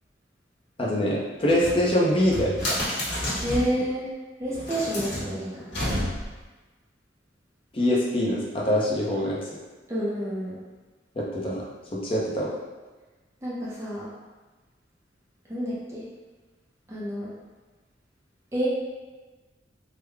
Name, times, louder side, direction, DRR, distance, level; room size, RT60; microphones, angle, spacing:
voice 1, 0.8-2.8 7.7-9.4 11.2-11.7 11.9-12.5, left 1 dB, 30° left, -5 dB, 0.7 m, -24 dB
sound 1, 1.4-3.8 4.5-6.4, left 1 dB, 80° left, 1.4 m, -31 dB
voice 2, 3.4-4.1 4.4-5.7 9.9-10.6 13.4-14.1 15.5-16.1 16.9-17.3 18.5-18.7, equal, 15° right, -8 dB, 0.7 m, -29 dB
3.6 x 2.2 x 3.3 m, 1.2 s
head